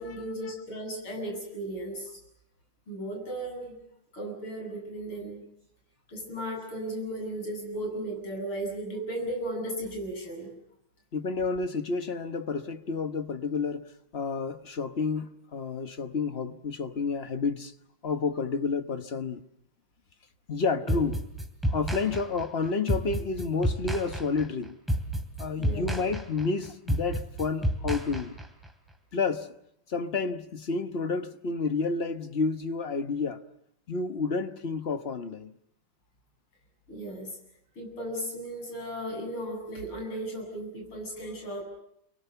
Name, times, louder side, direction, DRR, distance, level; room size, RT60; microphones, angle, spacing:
voice 1, 0.0-2.2 2.9-3.8 4.1-5.4 6.1-10.5 20.8-21.0 25.6-25.9 36.9-37.3 37.8-41.6, right 1 dB, 75° left, 9.0 m, -35 dB
voice 2, 11.1-17.7 18.0-19.4 20.5-21.2 21.7-24.7 25.4-28.4 29.1-29.5 29.9-33.4 33.9-35.5, left 4 dB, 40° left, 0.9 m, -30 dB
sound 1, 20.9-28.7, equal, ahead, 2.6 m, -30 dB
30.0 x 23.0 x 6.9 m
omnidirectional pair, 2.4 m